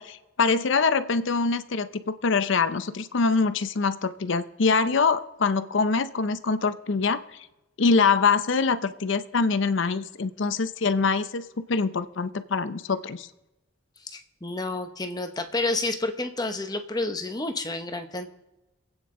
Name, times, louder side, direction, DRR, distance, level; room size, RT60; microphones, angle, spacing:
voice 1, 0.0-7.2 7.8-13.3, left 4 dB, 65° left, 13 dB, 0.6 m, -24 dB
voice 2, 14.0-18.3, left 2 dB, 20° left, 7 dB, 0.9 m, -30 dB
26.5 x 8.9 x 3.7 m, 0.98 s
head